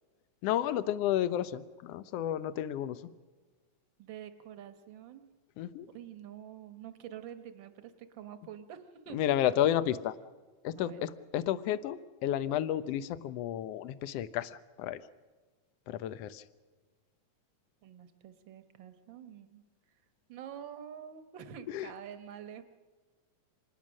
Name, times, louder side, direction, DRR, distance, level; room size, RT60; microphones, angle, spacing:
voice 1, 0.4-3.0 5.6-5.9 9.1-10.2 10.6-15.0 15.9-16.4 21.7-21.9, left 11 dB, 70° left, 14 dB, 1.6 m, -31 dB
voice 2, 4.0-5.2 5.9-9.2 10.7-11.0 17.8-19.6 20.3-22.6, right 9 dB, 55° right, 10 dB, 1.5 m, -47 dB
26.0 x 20.0 x 6.3 m, 1.3 s
omnidirectional pair, 3.3 m